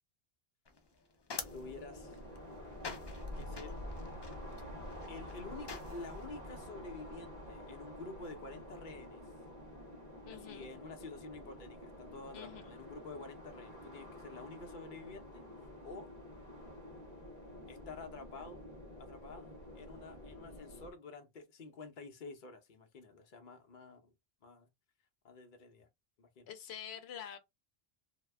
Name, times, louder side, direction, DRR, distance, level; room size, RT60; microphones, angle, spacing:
sound 1, 0.6-6.3, left 4 dB, 35° left, 0.4 m, -48 dB
sound 2, 1.4-20.9, left 1 dB, 45° right, 1.0 m, -49 dB
voice 1, 1.5-2.2 3.4-3.8 5.1-9.2 10.3-16.1 17.7-18.6 19.0-24.1 24.4-24.7 25.2-25.9 26.2-26.5, left 3 dB, 55° left, 0.9 m, -49 dB
voice 2, 10.2-10.7 12.3-12.8 26.5-27.4, left 9 dB, 85° left, 0.8 m, -47 dB
2.8 x 2.2 x 3.3 m
omnidirectional pair, 1.0 m